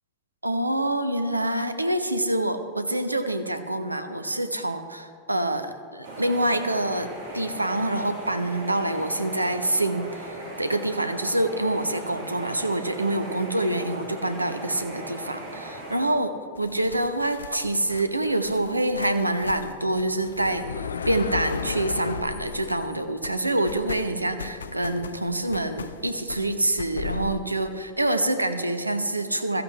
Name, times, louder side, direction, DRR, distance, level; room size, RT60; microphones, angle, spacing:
voice 1, 0.4-7.1 7.3-10.1 10.6-29.6, right 1 dB, 85° right, 9 dB, 0.8 m, -26 dB
sound 1, 6.0-16.0, right 1 dB, 60° right, 3.4 m, -38 dB
sound 2, 16.6-23.0 23.2-27.3, left 6 dB, 70° left, 0.5 m, -36 dB
16.0 x 14.5 x 3.2 m, 2.3 s
figure-of-eight pair, 90°, 0 cm